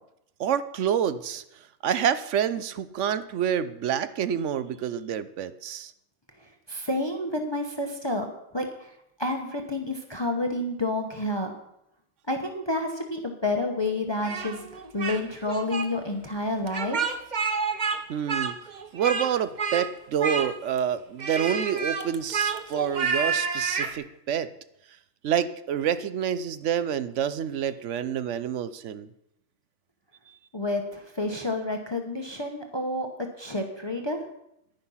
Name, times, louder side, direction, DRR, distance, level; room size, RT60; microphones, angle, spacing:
voice 1, 0.4-1.4 1.8-5.9 18.1-18.6 18.9-24.5 25.2-29.1 30.3-30.4, right 9 dB, 65° right, 14 dB, 1.0 m, -28 dB
voice 2, 6.7-8.9 9.2-11.5 12.3-17.2 30.5-34.2, left 2 dB, 20° left, 4 dB, 1.0 m, -29 dB
Speech, 14.2-15.2 15.5-15.9 16.7-18.0 18.3-19.3 19.6-19.9 20.2-20.8 21.2-23.9, right 5 dB, 35° right, 0.9 m, -29 dB
10.5 x 10.5 x 5.6 m, 0.79 s
omnidirectional pair, 1.4 m